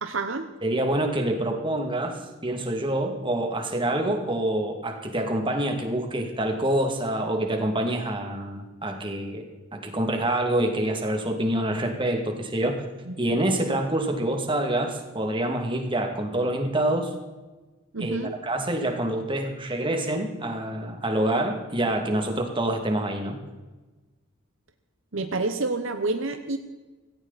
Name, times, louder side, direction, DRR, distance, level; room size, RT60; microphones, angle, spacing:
voice 1, 0.0-0.5 13.1-13.2 17.9-18.4 25.1-26.6, right 3 dB, 65° right, 7 dB, 1.0 m, -28 dB
voice 2, 0.6-9.4 9.7-12.7 13.2-17.1 18.0-18.2 18.4-23.4, right 1 dB, 25° right, 4 dB, 2.4 m, -26 dB
17.0 x 16.0 x 4.2 m, 1.2 s
head